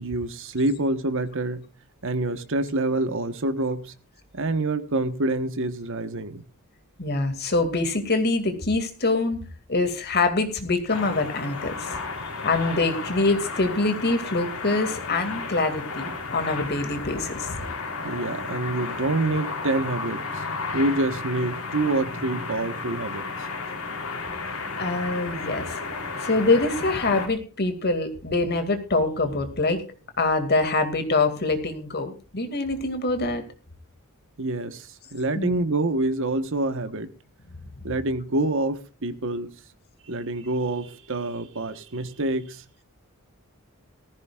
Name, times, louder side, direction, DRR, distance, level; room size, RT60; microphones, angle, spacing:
voice 1, 0.0-1.7 2.0-3.9 4.3-6.4 18.0-20.4 20.7-23.2 34.4-37.1 37.8-39.5 40.1-42.6, right 2 dB, 60° right, 1.3 m, -27 dB
voice 2, 7.0-9.4 9.7-12.0 12.4-17.6 24.8-25.8 26.2-29.8 30.2-33.4 35.4-35.6, left 3 dB, 50° left, 2.4 m, -24 dB
sound 1, 10.9-27.3, left 4 dB, 75° left, 3.5 m, -33 dB
18.0 x 15.0 x 2.5 m
head